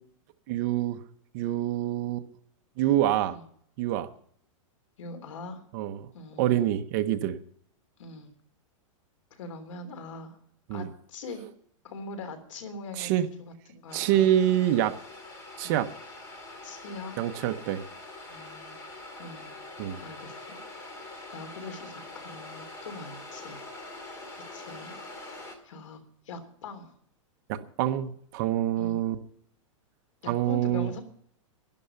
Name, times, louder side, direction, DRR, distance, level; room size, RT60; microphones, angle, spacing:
voice 1, 0.5-1.0 1.3-2.2 2.8-3.4 3.8-4.1 5.7-6.1 6.4-7.4 10.7-10.9 13.0-13.3 13.9-15.0 15.6-15.9 17.2-17.8 19.8-20.0 27.5-29.2 30.3-30.9, right 12 dB, 30° right, 9 dB, 0.8 m, -26 dB
voice 2, 5.0-5.6 6.1-6.6 8.0-8.3 9.3-10.4 10.7-11.4 11.8-13.1 13.4-14.2 15.6-15.8 16.6-17.1 18.3-18.8 19.2-19.5 20.0-20.6 21.3-23.6 24.3-25.0 25.6-26.0 26.3-26.9 28.8-29.0 30.2-31.0, left 3 dB, 65° left, 8 dB, 3.3 m, -42 dB
sound 1, 13.9-25.6, left 2 dB, 15° left, 2.3 m, -44 dB
12.5 x 11.0 x 6.9 m, 0.63 s
supercardioid pair, 170°, 17 cm